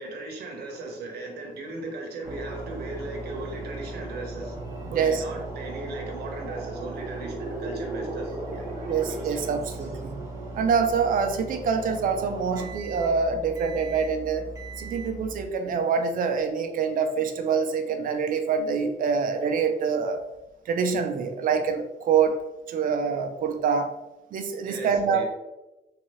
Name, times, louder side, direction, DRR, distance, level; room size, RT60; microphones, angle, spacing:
voice 1, 0.0-4.6 4.9-8.7 24.6-25.3, right 2 dB, 80° right, 1 dB, 1.0 m, -37 dB
sound 1, 2.2-15.4, right 2 dB, 20° right, 0.8 m, -38 dB
sound 2, 4.3-10.0, right 1 dB, 40° right, 1.1 m, -38 dB
voice 2, 4.9-5.2 8.9-10.2 10.5-14.5 14.8-20.2 20.7-22.4 22.7-23.9 24.3-25.2, right 6 dB, 55° right, 6 dB, 0.5 m, -25 dB
3.6 x 2.9 x 3.0 m, 0.99 s
cardioid pair, 145°, 16 cm